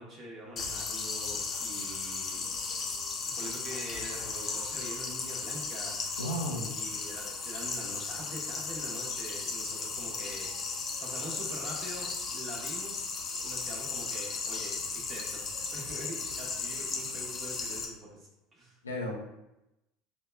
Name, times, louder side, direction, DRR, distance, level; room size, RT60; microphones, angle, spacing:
voice 1, 0.0-2.4 3.3-6.2 6.7-13.0 13.4-18.8, right 1 dB, 35° right, -2 dB, 1.1 m, -44 dB
sound 1, 0.6-17.8, left 4 dB, 35° left, 0.6 m, -36 dB
voice 2, 6.2-6.7 7.1-7.3 18.8-19.1, equal, 85° left, -1 dB, 0.5 m, -34 dB
4.6 x 2.2 x 2.2 m, 0.92 s
figure-of-eight pair, 70°, 0 cm